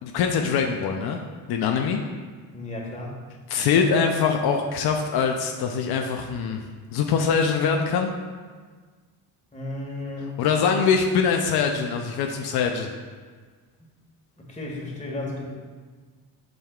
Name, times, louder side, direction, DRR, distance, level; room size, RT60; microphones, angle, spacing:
voice 1, 0.0-1.2 1.5-2.0 3.5-6.6 6.9-8.1 10.4-12.9, left 6 dB, 70° left, 3 dB, 0.6 m, -23 dB
voice 2, 2.5-3.2 9.5-10.3 14.4-15.5, left 2 dB, 20° left, -2 dB, 1.6 m, -33 dB
7.4 x 5.3 x 2.4 m, 1.5 s
cardioid pair, 85°, 39 cm